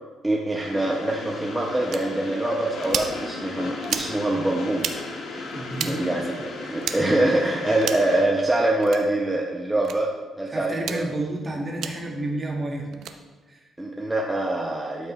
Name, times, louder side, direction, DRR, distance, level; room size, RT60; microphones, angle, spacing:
voice 1, 0.2-5.5 5.8-6.4 6.7-10.1 10.4-11.1 13.8-15.1, right 1 dB, 10° right, -2 dB, 0.8 m, -24 dB
Train, 0.6-8.2, left 3 dB, 70° left, 1.5 m, -36 dB
sound 1, 1.9-2.0 2.8-3.1 3.8-4.1 4.8-5.0 5.7-5.9 6.8-7.0 7.8-8.1 8.8-9.0 9.8-10.0 10.8-11.0 11.8-11.9 12.9-13.1, right 8 dB, 75° right, 0.6 m, -30 dB
voice 2, 5.5-6.1 6.6-6.8 10.5-12.9 13.5-13.6, right 2 dB, 30° right, 0 dB, 1.6 m, -31 dB
12.0 x 5.2 x 3.1 m, 1.3 s
cardioid pair, 90°, 0 cm